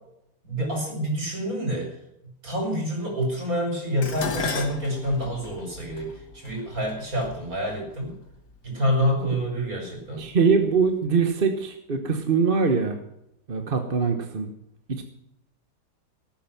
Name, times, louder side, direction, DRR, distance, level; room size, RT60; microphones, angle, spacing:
voice 1, 0.4-2.0 2.4-8.1 8.6-10.2, equal, 60° right, 1 dB, 6.1 m, -27 dB
Dishes pots and pans, 4.0-8.4 9.3-9.7 10.0-10.9 11.1-11.2, left 4 dB, 90° left, 2.6 m, -35 dB
voice 2, 10.2-13.0 13.5-14.5 14.9-15.0, right 5 dB, 35° right, 6 dB, 1.3 m, -23 dB
18.5 x 9.1 x 5.9 m, 0.81 s
omnidirectional pair, 1.7 m